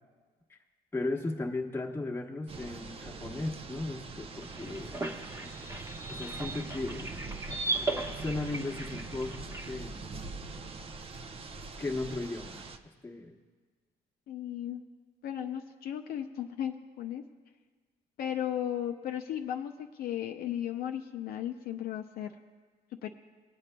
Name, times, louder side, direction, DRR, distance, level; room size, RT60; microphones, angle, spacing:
voice 1, 0.9-5.0 6.1-7.1 8.1-10.1 11.8-12.6 13.0-13.3, left 2 dB, 15° left, 0 dB, 1.1 m, -36 dB
sound 1, 2.5-12.8, right 3 dB, 35° right, 0.6 m, -43 dB
sound 2, 4.2-9.7, right 2 dB, 15° right, 1.0 m, -37 dB
voice 2, 14.3-14.8 15.2-17.2 18.2-22.3 23.0-23.1, left 10 dB, 65° left, 4 dB, 0.5 m, -35 dB
23.5 x 8.3 x 2.2 m, 1.5 s
cardioid pair, 110°, 17 cm